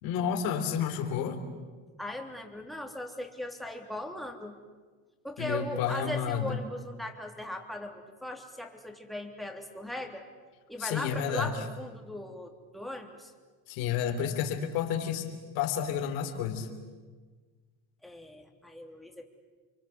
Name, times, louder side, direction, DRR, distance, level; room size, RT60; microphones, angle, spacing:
voice 1, 0.0-1.4 5.4-6.6 10.8-11.5 13.7-15.3 15.5-16.7, left 8 dB, 80° left, 5 dB, 3.9 m, -30 dB
voice 2, 2.0-4.6 5.2-10.3 10.7-13.3 18.0-19.3, left 1 dB, ahead, 2 dB, 3.3 m, -39 dB
30.0 x 24.0 x 8.1 m, 1.4 s
cardioid pair, 115°, 34 cm